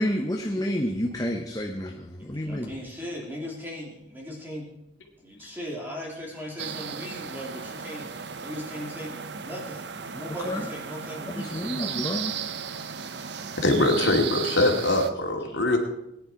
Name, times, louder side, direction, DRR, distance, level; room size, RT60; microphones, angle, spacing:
voice 1, 0.0-2.7 10.5-10.6 11.5-12.3, equal, 20° left, 2 dB, 1.0 m, -29 dB
voice 2, 2.2-4.7 5.2-11.9 13.4-13.5, equal, 10° right, -2 dB, 3.3 m, -38 dB
sound 1, 6.6-15.1, right 7 dB, 60° right, 0.7 m, -35 dB
voice 3, 13.6-15.8, left 2 dB, 75° left, 2 dB, 2.4 m, -22 dB
19.0 x 10.0 x 4.6 m, 0.84 s
head